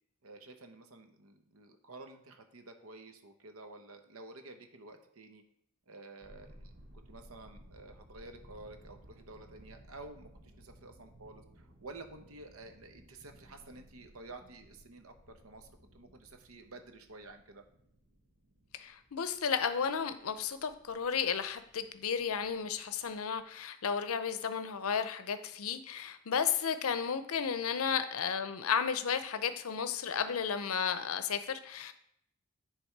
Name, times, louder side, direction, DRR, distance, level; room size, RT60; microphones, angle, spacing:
voice 1, 0.2-5.4 5.9-6.7 7.1-17.6, right 2 dB, 85° right, 6 dB, 1.0 m, -51 dB
sound 1, 6.2-23.4, right 1 dB, 50° right, 1.5 m, -59 dB
voice 2, 18.7-31.9, left 7 dB, 85° left, 11 dB, 0.6 m, -33 dB
10.0 x 3.5 x 4.6 m, 0.74 s
head